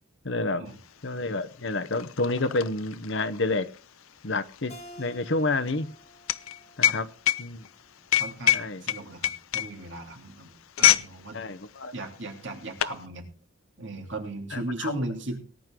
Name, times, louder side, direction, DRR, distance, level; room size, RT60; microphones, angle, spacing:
voice 1, 0.2-0.7 1.0-3.7 4.2-5.9 6.8-7.1 7.4-7.7 8.5-8.8 11.3-11.9 14.5-15.0, left 2 dB, 60° left, 11 dB, 1.0 m, -29 dB
sound 1, 0.8-0.9 1.2-11.1 11.4-11.7 12.4-13.0, left 11 dB, 90° left, 0.6 m, -26 dB
Keyboard (musical), 4.7-7.9, left 1 dB, 30° left, 2.6 m, -50 dB
voice 2, 8.2-11.4 11.9-13.3 13.8-15.4, right 1 dB, 60° right, 3 dB, 3.0 m, -37 dB
18.5 x 9.8 x 3.8 m, 0.37 s
head